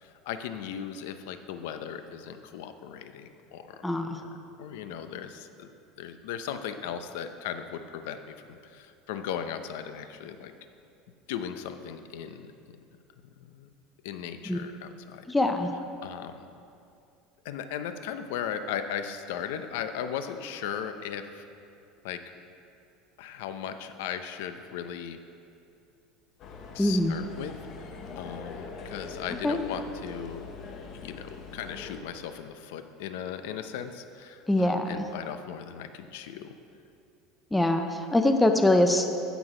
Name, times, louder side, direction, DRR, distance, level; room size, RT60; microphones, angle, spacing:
voice 1, 0.0-3.8 4.2-4.3 4.6-5.7 6.0-10.5 11.3-12.8 13.5-13.7 14.0-15.2 16.0-16.5 17.4-21.4 22.0-22.2 23.2-25.2 26.7-30.5 30.9-36.6, left 8 dB, 80° left, 9 dB, 0.7 m, -37 dB
voice 2, 3.8-4.2 14.5-14.6 15.3-15.7 26.8-27.1 29.4-29.6 34.5-35.0 37.5-39.0, left 1 dB, 5° left, 5 dB, 0.5 m, -23 dB
sound 1, 26.4-32.0, left 4 dB, 35° left, 1.0 m, -42 dB
15.0 x 6.2 x 5.0 m, 2.6 s
cardioid pair, 165°, 0 cm